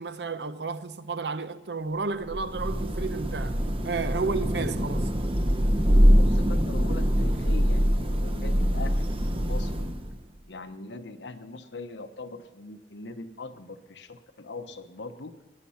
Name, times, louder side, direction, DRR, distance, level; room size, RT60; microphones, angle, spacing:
voice 1, 0.0-3.6 3.8-5.1, right 4 dB, 70° right, 0.8 m, -32 dB
Thunder / Rain, 2.2-10.3, equal, 30° right, 0.9 m, -24 dB
voice 2, 6.1-9.9 10.5-15.3, left 3 dB, 85° left, 1.1 m, -41 dB
18.0 x 10.5 x 5.8 m
head